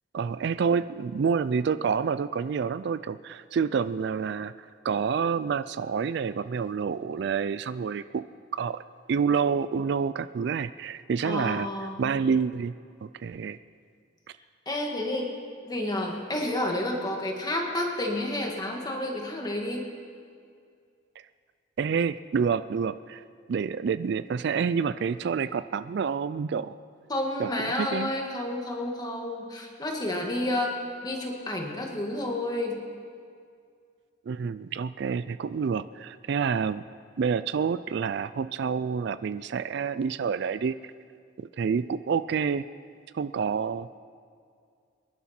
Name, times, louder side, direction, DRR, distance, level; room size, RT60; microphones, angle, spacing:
voice 1, 0.1-8.2 8.5-8.8 9.1-11.7 12.0-12.7 13.0-13.6 21.2-21.3 21.8-26.8 27.4-27.5 27.8-28.1 34.3-36.8 37.2-40.7 41.4-42.6 43.1-43.9, right 6 dB, 60° right, 14 dB, 0.3 m, -28 dB
voice 2, 11.2-12.1 14.7-15.3 15.6-19.9 27.1-30.8 31.0-32.8, left 1 dB, 20° left, 1 dB, 1.8 m, -30 dB
26.0 x 11.0 x 4.4 m, 2.3 s
head